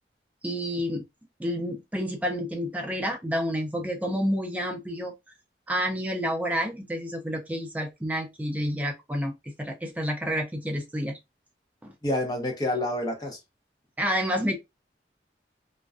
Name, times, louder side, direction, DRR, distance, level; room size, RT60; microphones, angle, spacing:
voice 1, 0.4-1.0 1.4-5.1 5.7-11.2 11.8-11.9 14.0-14.6, equal, 10° right, 0.4 m, -29 dB
voice 2, 12.0-13.4, left 1 dB, 20° left, 0.7 m, -28 dB
2.4 x 2.2 x 2.3 m
head